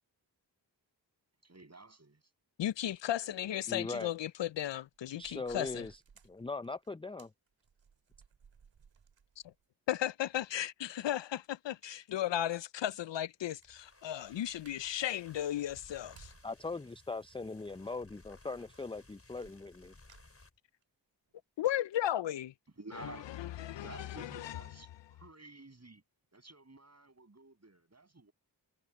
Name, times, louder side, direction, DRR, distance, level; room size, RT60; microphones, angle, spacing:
voice 1, 1.4-2.2 22.8-23.3 23.8-26.0 26.3-28.3, right 3 dB, 35° right, 7.0 m, -52 dB
voice 2, 2.6-5.8 9.9-16.3 21.6-22.5 23.0-23.1 23.4-23.8 24.2-24.6, left 12 dB, 75° left, 0.6 m, -35 dB
voice 3, 3.7-4.1 5.2-6.0 6.2-7.3 16.4-19.9, left 3 dB, 10° left, 0.6 m, -40 dB
sound 1, 4.1-4.2 4.5-9.7 10.0-10.1 11.8-12.1 12.5-12.6 12.9-13.0 13.1-15.0 15.4-16.6 16.9-17.2 18.4-18.5 18.7-19.0 19.4-20.8 21.3-21.4 21.7-21.8, right 6 dB, 75° right, 3.2 m, -63 dB
sound 2, 13.6-20.6, left 2 dB, 30° left, 6.8 m, -60 dB
cardioid pair, 55°, 44 cm